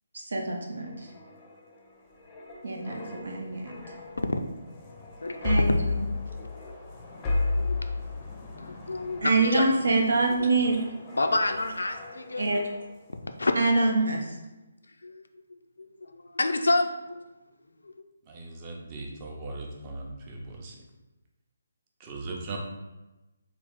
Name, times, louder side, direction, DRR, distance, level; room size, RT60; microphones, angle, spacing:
voice 1, 0.1-0.9 2.6-3.8 5.4-5.8 9.2-10.8 12.4-12.6 13.6-14.3, right 3 dB, 65° right, 1 dB, 0.6 m, -25 dB
sound 1, 0.7-13.1 13.4-13.7, left 3 dB, 20° left, 0.5 m, -34 dB
voice 2, 7.5-8.0 8.6-9.8 11.2-12.6 13.4-13.5 15.0-17.2 17.8-17.9, left 2 dB, 75° left, 6 dB, 0.3 m, -29 dB
voice 3, 18.3-20.8 22.0-22.6, right 3 dB, 30° right, 0 dB, 0.6 m, -39 dB
3.4 x 2.4 x 3.5 m, 1.1 s
figure-of-eight pair, 145°, 0 cm